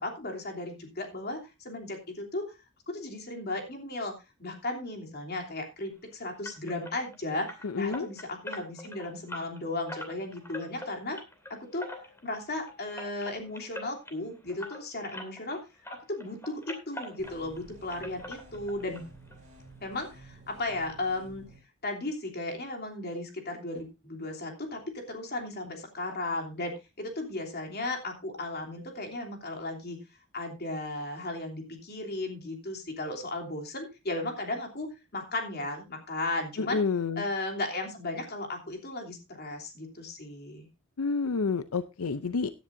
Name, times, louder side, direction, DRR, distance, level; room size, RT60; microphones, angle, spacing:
voice 1, 0.0-1.4 1.6-2.4 2.9-11.2 11.5-11.9 12.2-15.6 16.1-19.1 19.8-21.5 21.8-30.0 30.3-36.8 37.2-40.7, left 2 dB, 50° left, 2 dB, 3.1 m, -35 dB
sound 1, 6.4-15.6 15.8-17.6 17.9-19.0 19.3-19.4 19.8-19.9 20.3-20.4, left 1 dB, 10° left, 2.7 m, -43 dB
voice 2, 7.6-8.1 36.6-37.2 41.0-42.5, left 4 dB, 90° left, 12 dB, 0.6 m, -29 dB
sound 2, 17.2-21.6, right 2 dB, 35° right, 4.6 m, -52 dB
16.5 x 10.5 x 2.6 m, 0.26 s
head